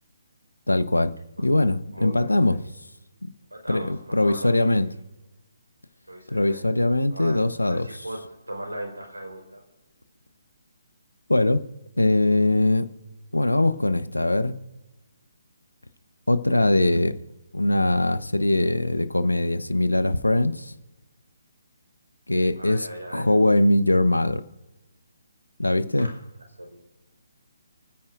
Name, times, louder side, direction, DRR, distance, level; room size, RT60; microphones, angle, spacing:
voice 1, 0.7-2.6 3.2-3.3 3.7-4.9 6.3-7.9 11.3-11.6 12.0-12.9 13.3-14.6 16.3-17.2 17.5-20.7 22.3-24.4 25.6-26.1, left 1 dB, 85° left, 12 dB, 1.1 m, -21 dB
voice 2, 1.9-2.7 3.5-4.9 6.1-6.6 7.1-9.6 22.5-23.3 26.0-26.2 26.6-26.8, right 1 dB, 85° right, 2 dB, 4.3 m, -38 dB
29.5 x 9.9 x 2.6 m, 1.1 s
figure-of-eight pair, 140°, 0 cm